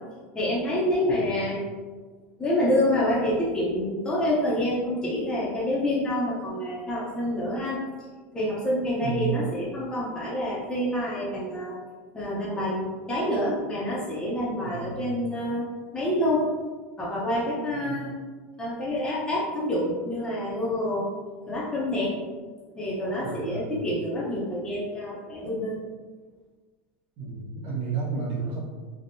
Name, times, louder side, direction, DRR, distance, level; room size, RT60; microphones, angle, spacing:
voice 1, 0.3-1.6 2.4-7.8 8.3-11.8 12.1-16.5 17.0-18.1 18.6-21.1 21.5-22.2 22.8-25.8, left 1 dB, 10° left, -7 dB, 0.6 m, -27 dB
voice 2, 9.0-9.4 14.6-15.0 17.8-18.1 23.2-23.7 27.2-28.6, right 5 dB, 50° right, -6 dB, 0.8 m, -32 dB
3.4 x 2.1 x 2.6 m, 1.4 s
supercardioid pair, 135°, 6 cm